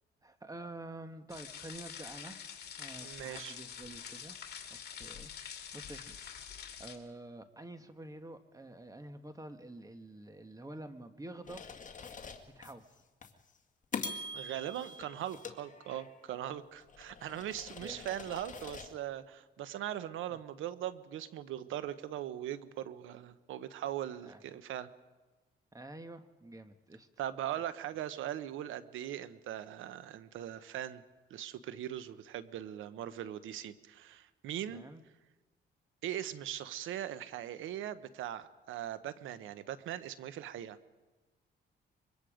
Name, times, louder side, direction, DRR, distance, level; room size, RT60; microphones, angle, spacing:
voice 1, 0.2-2.4 2.8-4.4 4.7-11.6 12.5-12.8 17.8-18.0 20.3-20.4 24.2-24.4 25.7-27.1 34.7-35.0, right 2 dB, 15° right, 8 dB, 1.6 m, -48 dB
sound 1, 1.3-7.0, left 8 dB, 55° left, 2.7 m, -46 dB
voice 2, 3.0-3.6 14.3-24.9 27.2-31.0 31.3-34.8 36.0-40.8, right 11 dB, 85° right, 13 dB, 1.1 m, -40 dB
sound 2, 11.5-12.7 13.2-13.4 13.9-16.3 16.8-18.9, left 4 dB, 40° left, 2.0 m, -44 dB
25.0 x 22.5 x 5.1 m, 1.2 s
cardioid pair, 90°, 20 cm